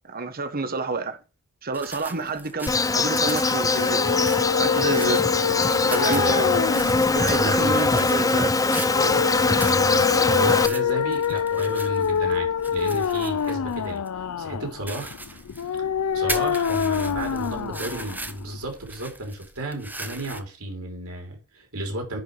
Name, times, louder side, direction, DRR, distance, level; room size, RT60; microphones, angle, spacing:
voice 1, 0.1-1.2 1.6-4.2 4.6-5.2 5.9-6.5 7.0-8.5, right 3 dB, 40° right, 1.2 m, -29 dB
sound 1, 1.7-20.4, right 2 dB, 10° right, 1.0 m, -40 dB
Insect, 2.7-10.7, left 3 dB, 15° left, 0.5 m, -22 dB
sound 2, 3.8-18.7, left 7 dB, 75° left, 0.5 m, -26 dB
voice 2, 6.1-6.6 7.2-8.1 9.6-15.9 16.1-22.2, right 1 dB, 70° right, 3.5 m, -33 dB
10.5 x 4.9 x 5.1 m
head